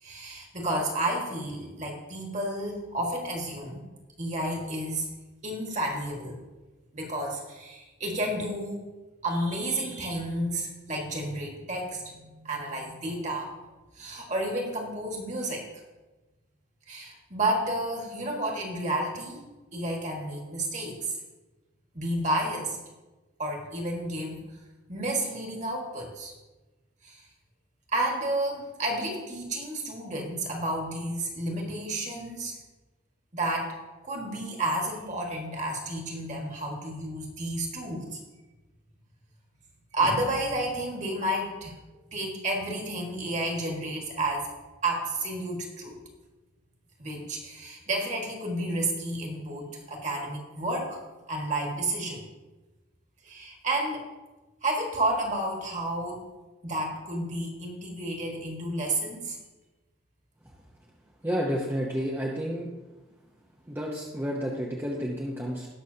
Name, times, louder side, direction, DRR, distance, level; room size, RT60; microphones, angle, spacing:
voice 1, 0.0-3.8 4.2-5.2 5.4-6.4 6.9-8.8 9.2-13.5 14.0-15.7 16.9-21.2 21.9-22.8 23.4-24.4 24.9-26.3 27.0-27.2 27.9-32.6 33.3-33.7 34.0-38.2 39.9-41.8 42.1-44.5 44.8-46.0 47.0-51.0 51.3-52.2 53.2-54.1 54.6-56.2 56.6-59.4, right 1 dB, 35° right, 0 dB, 1.8 m, -31 dB
voice 2, 61.2-62.7 63.7-65.7, equal, 10° right, -3 dB, 0.8 m, -30 dB
18.5 x 6.2 x 2.8 m, 1.2 s
head